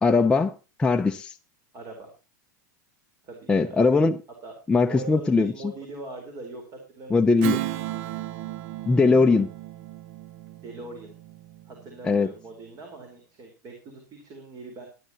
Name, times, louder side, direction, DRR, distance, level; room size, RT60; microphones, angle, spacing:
voice 1, 0.0-0.5 0.8-1.4 3.5-4.2 4.7-5.5 7.1-7.6 8.9-9.5 12.0-12.3, left 4 dB, 10° left, 0.7 m, -20 dB
voice 2, 1.7-2.1 3.2-3.8 4.4-4.5 4.9-6.6 6.9-7.3 10.6-11.2 11.6-14.9, right 2 dB, 40° right, 4.4 m, -41 dB
Strum, 7.4-12.3, right 14 dB, 60° right, 1.0 m, -35 dB
18.0 x 11.0 x 3.0 m
hypercardioid pair, 110°, 10 cm